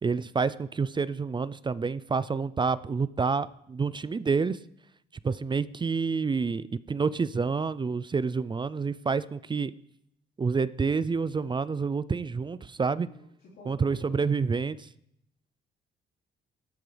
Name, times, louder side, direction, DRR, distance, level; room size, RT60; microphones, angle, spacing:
voice 1, 0.0-4.6 5.2-9.7 10.4-13.1 13.7-14.9, right 5 dB, 25° right, 17 dB, 0.4 m, -28 dB
voice 2, 13.0-14.3, left 1 dB, 85° left, -9 dB, 4.2 m, -50 dB
18.0 x 13.0 x 3.4 m, 0.76 s
cardioid pair, 90°, 20 cm